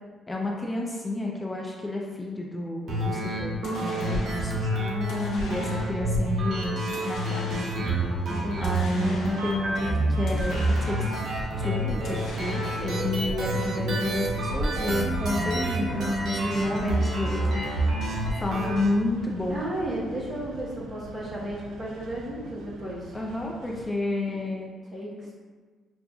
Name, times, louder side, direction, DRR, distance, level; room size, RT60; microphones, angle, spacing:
voice 1, 0.3-4.7 5.5-7.9 8.6-11.2 11.6-17.6 18.4-19.6 23.1-24.7, left 2 dB, 15° left, -2 dB, 0.5 m, -30 dB
sound 1, 2.9-18.9, right 1 dB, 65° right, 1.0 m, -28 dB
sound 2, 3.6-4.6 5.1-6.1 6.9-8.0 8.6-9.7 10.3-11.4 12.0-13.1, left 2 dB, 80° left, 0.7 m, -42 dB
voice 2, 4.7-5.6 8.3-8.8 19.5-23.2 24.9-25.3, equal, 35° right, -7 dB, 1.1 m, -33 dB
sound 3, 7.5-23.9, right 3 dB, 80° right, 0.3 m, -41 dB
5.8 x 2.5 x 2.3 m, 1.4 s
cardioid pair, 90°, 0 cm